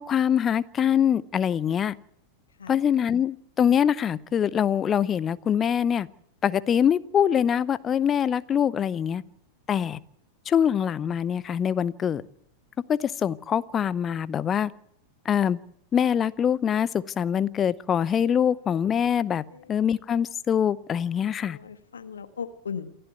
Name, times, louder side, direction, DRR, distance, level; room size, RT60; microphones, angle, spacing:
voice 1, 0.0-1.9 2.7-6.1 6.4-9.2 9.7-10.0 10.5-12.2 12.9-14.7 15.2-15.6 15.9-19.4 19.7-21.6, left 8 dB, 25° left, 0.8 m, -24 dB
voice 2, 21.4-22.9, left 6 dB, 70° left, 1.6 m, -37 dB
28.0 x 11.5 x 9.4 m
figure-of-eight pair, 90°, 0 cm